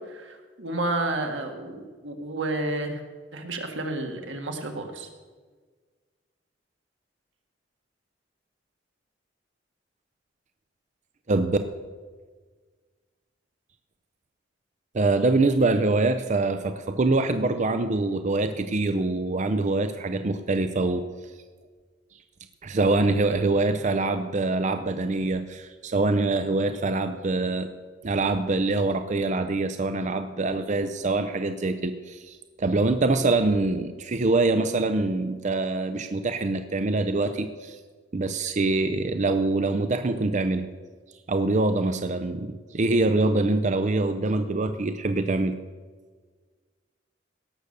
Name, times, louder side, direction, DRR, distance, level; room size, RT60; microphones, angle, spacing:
voice 1, 0.1-3.0 3.3-5.1, right 2 dB, 85° right, 3 dB, 1.9 m, -31 dB
voice 2, 11.3-11.6 14.9-21.0 22.6-27.7 28.0-37.8 38.1-40.7 41.3-45.6, right 2 dB, 40° right, 9 dB, 0.6 m, -24 dB
18.0 x 6.8 x 6.6 m, 1.5 s
head